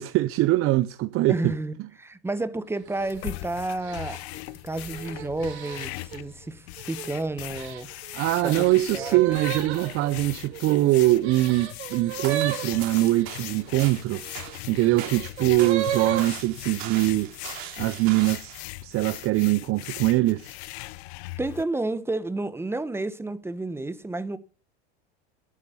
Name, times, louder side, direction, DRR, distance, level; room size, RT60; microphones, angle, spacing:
voice 1, 0.0-1.5 8.1-14.2 14.7-17.3 17.8-18.5 18.8-20.6, right 17 dB, 40° right, 0.6 m, -23 dB
voice 2, 1.3-4.2 4.6-7.9 8.4-8.7 8.9-9.4 21.4-24.4, right 2 dB, 5° right, 1.2 m, -31 dB
sound 1, 2.8-3.2 3.8-6.2 6.8-7.2 7.6-13.4 14.2-16.3, right 11 dB, 80° right, 2.3 m, -34 dB
sound 2, 3.0-21.6, left 19 dB, 70° left, 0.8 m, -39 dB
sound 3, 12.0-18.6, right 10 dB, 65° right, 3.0 m, -40 dB
12.5 x 8.4 x 6.9 m
hypercardioid pair, 105°, 33 cm